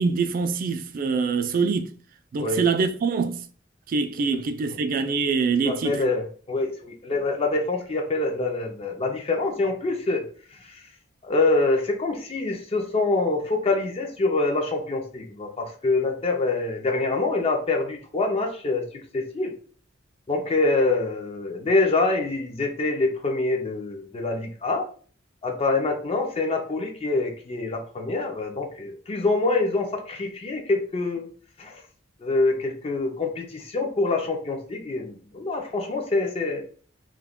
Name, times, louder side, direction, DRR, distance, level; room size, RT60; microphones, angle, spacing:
voice 1, 0.0-1.9 2.3-3.4 3.9-6.0, right 4 dB, 50° right, 0.3 m, -24 dB
voice 2, 5.6-10.2 10.6-10.8 11.2-19.5 20.3-24.9 25.4-31.3 31.6-31.8 32.2-36.6, left 3 dB, 30° left, 0.4 m, -25 dB
2.2 x 2.1 x 3.5 m
head